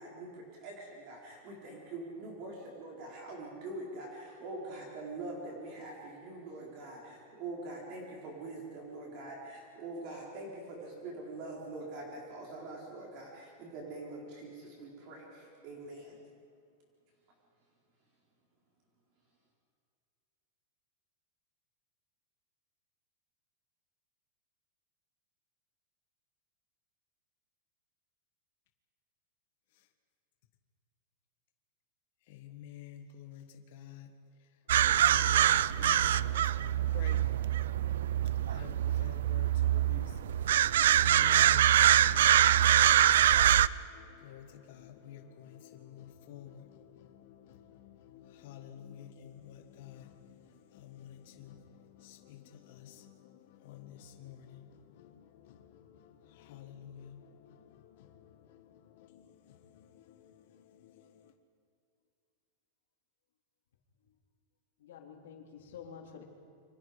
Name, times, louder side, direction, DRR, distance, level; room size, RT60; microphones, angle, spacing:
voice 1, 0.0-16.2, right 2 dB, 35° right, 4.2 m, -44 dB
voice 2, 32.3-34.1 34.4-61.3, left 10 dB, 50° left, 1.6 m, -51 dB
sound 1, 34.7-43.7, right 11 dB, 80° right, 0.5 m, -24 dB
voice 3, 64.8-66.2, left 7 dB, 80° left, 3.7 m, -49 dB
29.0 x 25.0 x 5.1 m
supercardioid pair, 175°, 0 cm